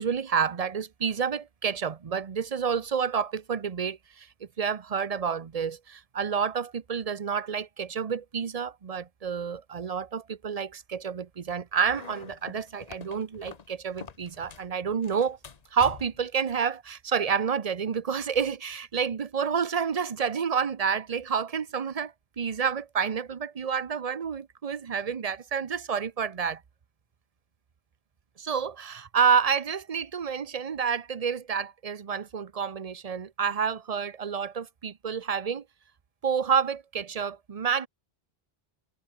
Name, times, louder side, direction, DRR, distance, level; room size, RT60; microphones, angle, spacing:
voice 1, 0.0-4.3 4.6-15.4 15.7-26.6 28.4-35.6 36.2-37.9, right 6 dB, 40° right, 0.8 m, -29 dB
sound 1, 11.9-14.7 15.0-16.3, left 6 dB, 40° left, 1.0 m, -46 dB
omnidirectional pair, 1.0 m